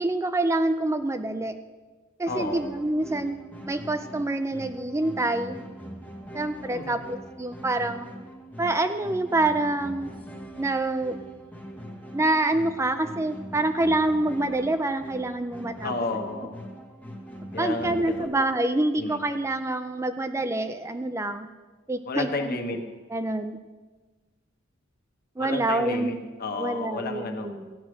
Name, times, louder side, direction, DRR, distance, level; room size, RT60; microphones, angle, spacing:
voice 1, 0.0-1.6 2.2-3.4 3.7-5.6 6.3-8.1 8.6-10.1 10.6-11.2 12.1-15.9 17.6-21.5 21.9-22.6 23.1-23.6 25.4-26.1 26.6-27.8, right 2 dB, 15° right, 9 dB, 0.4 m, -26 dB
voice 2, 2.3-2.6 6.7-7.0 15.8-16.6 17.5-18.3 18.9-19.2 22.0-22.8 25.4-27.5, left 3 dB, 50° left, 4 dB, 1.5 m, -32 dB
sound 1, 2.3-18.3, equal, 10° left, 1.4 m, -42 dB
14.0 x 9.8 x 6.3 m, 1.3 s
head